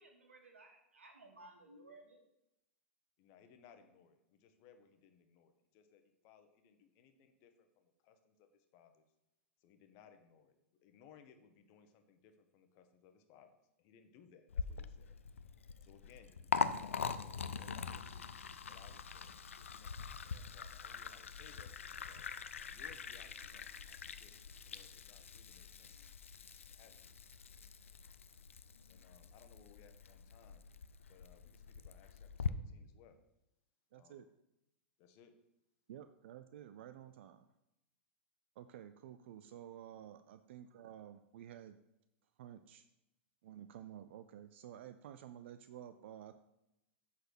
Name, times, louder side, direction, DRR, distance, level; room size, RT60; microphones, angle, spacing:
voice 1, 0.0-2.2, right 2 dB, 90° right, 3 dB, 1.6 m, -58 dB
voice 2, 3.2-9.0 9.6-10.6 10.8-15.2 15.8-18.3 18.7-22.3 22.6-24.3 24.6-26.1 26.7-27.1 28.9-30.7 31.0-33.2 33.9-34.3 35.0-35.3, left 7 dB, 45° left, 7 dB, 1.1 m, -64 dB
Liquid, 14.5-32.5, left 6 dB, 90° left, 0.5 m, -43 dB
voice 3, 33.9-34.3 35.9-37.5 38.6-41.8 42.4-42.9 43.4-46.3, right 10 dB, 65° right, 11 dB, 0.4 m, -52 dB
8.0 x 4.2 x 6.3 m, 0.89 s
hypercardioid pair, 110°, 7 cm